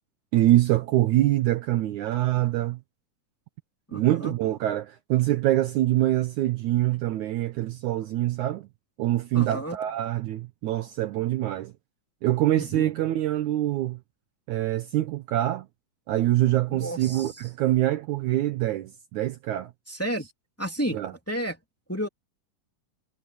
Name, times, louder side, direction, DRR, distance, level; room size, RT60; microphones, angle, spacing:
voice 1, 0.3-2.8 3.9-8.7 9.0-11.7 12.2-14.0 14.5-15.7 16.1-19.7 20.9-21.1, right 14 dB, 70° right, 2.0 m, -24 dB
voice 2, 3.9-4.3 9.3-9.8 12.5-12.9 16.7-17.3 19.9-20.3 20.6-21.0 21.3-21.6 21.9-22.1, right 1 dB, 5° left, 2.6 m, -31 dB
omnidirectional pair, 3.9 m